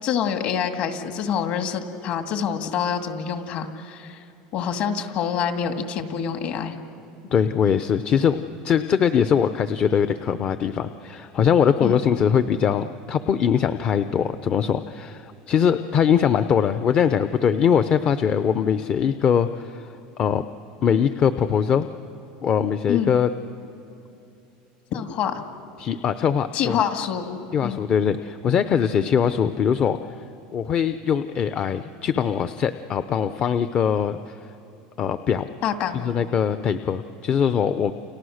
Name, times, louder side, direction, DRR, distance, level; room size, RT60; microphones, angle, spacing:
voice 1, 0.0-4.2 4.5-6.7 11.8-12.0 22.9-23.1 24.9-25.4 26.5-27.8 35.6-36.0, left 8 dB, 50° left, 6 dB, 2.1 m, -26 dB
voice 2, 7.3-8.4 8.6-19.9 20.2-20.4 20.8-21.9 22.4-23.3 25.8-26.8 27.5-30.0 30.5-34.3 35.0-35.5 35.9-37.9, left 7 dB, 35° left, 11 dB, 0.7 m, -22 dB
29.5 x 29.0 x 6.5 m, 2.8 s
supercardioid pair, 145°, 3 cm